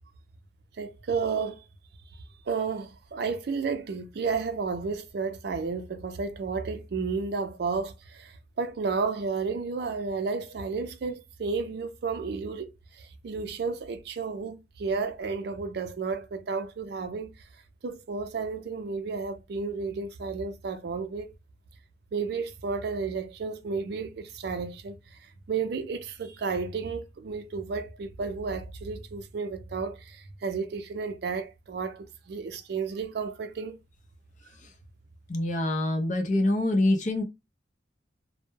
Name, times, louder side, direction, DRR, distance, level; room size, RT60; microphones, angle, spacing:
voice 1, 0.8-1.6 2.1-17.3 17.8-21.3 22.1-33.8, right 4 dB, 60° right, 0.4 m, -32 dB
voice 2, 35.3-37.2, left 1 dB, 45° left, 0.6 m, -25 dB
2.2 x 2.1 x 3.0 m
head